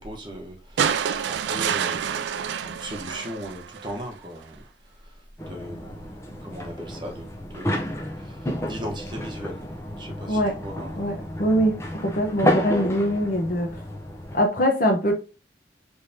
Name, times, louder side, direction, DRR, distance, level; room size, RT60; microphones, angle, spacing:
voice 1, 0.0-4.6 5.5-9.6 10.0-11.0, equal, 25° right, 0.9 m, -38 dB
sound 1, 0.8-4.1 5.4-5.5, right 8 dB, 75° right, 0.3 m, -27 dB
sound 2, 5.4-14.4, equal, 15° left, 0.5 m, -31 dB
voice 2, 10.3-10.6 10.9-13.8 14.3-15.1, equal, 50° left, 0.8 m, -23 dB
3.4 x 3.3 x 2.6 m
head